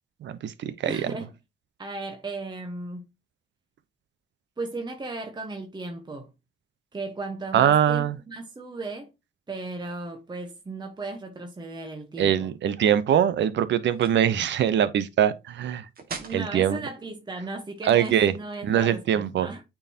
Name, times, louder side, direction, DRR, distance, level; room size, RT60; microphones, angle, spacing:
voice 1, 0.2-1.1 7.5-8.2 12.2-15.9 16.3-16.8 17.8-18.3 18.6-19.5, right 9 dB, 65° right, 0.8 m, -22 dB
voice 2, 0.8-1.3 1.8-3.0 4.6-6.3 6.9-9.1 9.5-12.5 16.2-19.6, right 2 dB, 20° right, 1.1 m, -36 dB
sound 1, 13.9-14.3 16.0-16.4 17.7-18.6, right 5 dB, 50° right, 1.7 m, -41 dB
8.7 x 4.6 x 2.9 m
cardioid pair, 90°, 20 cm